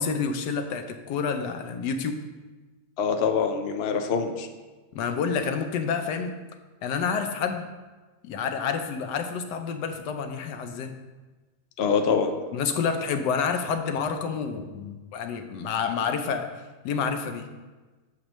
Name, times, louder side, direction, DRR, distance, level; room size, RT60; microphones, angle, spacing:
voice 1, 0.0-2.2 4.9-6.3 6.8-7.7 8.2-11.0 12.5-16.5 16.8-17.5, left 6 dB, 85° left, 7 dB, 1.2 m, -28 dB
voice 2, 3.0-4.5 11.8-12.3, left 6 dB, 55° left, 6 dB, 0.7 m, -24 dB
7.6 x 7.2 x 3.0 m, 1.3 s
omnidirectional pair, 1.8 m